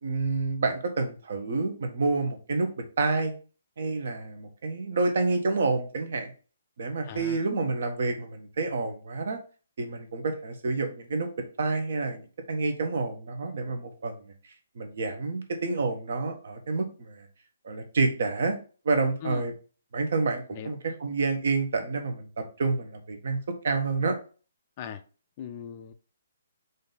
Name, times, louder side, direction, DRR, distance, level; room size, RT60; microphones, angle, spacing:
voice 1, 0.0-2.7 3.0-3.3 3.8-6.3 6.8-9.4 9.8-11.3 11.6-12.2 12.5-14.1 14.8-17.3 17.6-18.6 18.8-19.5 19.9-23.4 23.6-24.2, right 3 dB, 60° right, 5 dB, 0.9 m, -28 dB
voice 2, 7.1-7.5 19.2-19.5 20.5-20.8 24.8-25.0 25.4-25.9, left 8 dB, 35° left, 9 dB, 0.3 m, -39 dB
3.9 x 2.7 x 3.8 m, 0.37 s
figure-of-eight pair, 135°, 0 cm